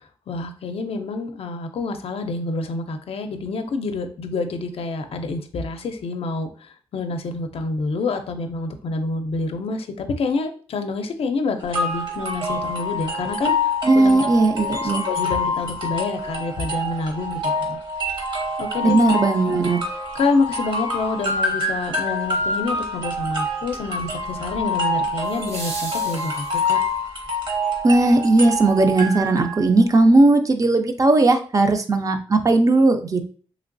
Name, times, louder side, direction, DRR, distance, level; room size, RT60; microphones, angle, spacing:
voice 1, 0.0-13.7 14.0-14.2 14.8-17.8 18.6-19.0 20.1-26.8, left 3 dB, 70° left, 7 dB, 0.4 m, -27 dB
sound 1, 11.7-29.7, left 1 dB, 50° right, 0.9 m, -26 dB
voice 2, 13.8-15.1 18.8-19.8 27.8-33.3, right 2 dB, 35° right, 7 dB, 0.4 m, -17 dB
sound 2, 19.6-19.7 25.2-27.0 29.2-29.3, right 1 dB, 80° right, 1.6 m, -36 dB
3.1 x 2.9 x 2.5 m, 0.41 s
wide cardioid pair, 115°, 10 cm